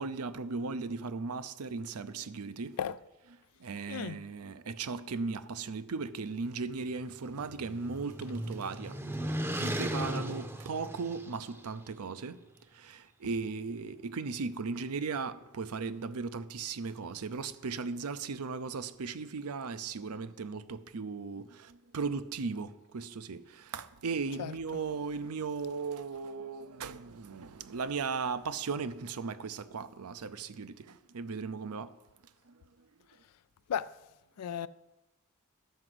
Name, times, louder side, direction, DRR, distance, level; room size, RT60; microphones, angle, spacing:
voice 1, 0.0-2.8 3.6-9.0 9.6-12.4 12.7-31.9 32.5-32.6, right 4 dB, 75° right, 0.6 m, -37 dB
voice 2, 3.9-4.2 24.4-24.8 33.7-33.9 34.4-34.7, left 8 dB, 90° left, 0.4 m, -35 dB
sound 1, 6.8-11.6, right 1 dB, 10° right, 0.7 m, -37 dB
11.5 x 4.9 x 7.8 m
head